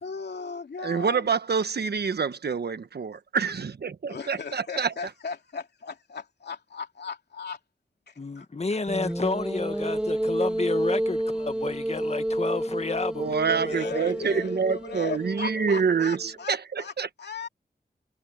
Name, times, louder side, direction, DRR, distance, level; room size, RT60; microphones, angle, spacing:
voice 1, 0.0-1.2 4.1-7.6 8.1-8.5 13.7-16.9 17.2-17.5, left 5 dB, 85° left, 2.7 m, -37 dB
voice 2, 0.8-5.1 13.1-17.1, right 6 dB, 75° right, 1.3 m, -27 dB
voice 3, 8.2-14.1, left 3 dB, 40° left, 1.5 m, -31 dB
sound 1, 8.9-16.3, right 1 dB, 5° right, 0.7 m, -30 dB
wide cardioid pair, 80°, 17 cm